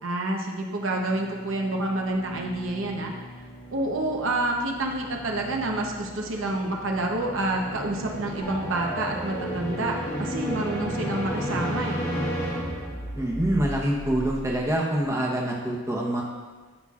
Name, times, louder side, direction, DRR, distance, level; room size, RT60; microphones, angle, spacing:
voice 1, 0.0-3.1 3.7-12.1, right 2 dB, 65° right, 1 dB, 0.8 m, -28 dB
sound 1, 0.7-13.4, equal, 15° left, 1.1 m, -35 dB
sound 2, 8.4-15.1, equal, 45° left, 1.4 m, -36 dB
voice 2, 13.1-16.2, right 1 dB, 15° right, -3 dB, 0.9 m, -25 dB
12.5 x 5.7 x 2.4 m, 1.4 s
head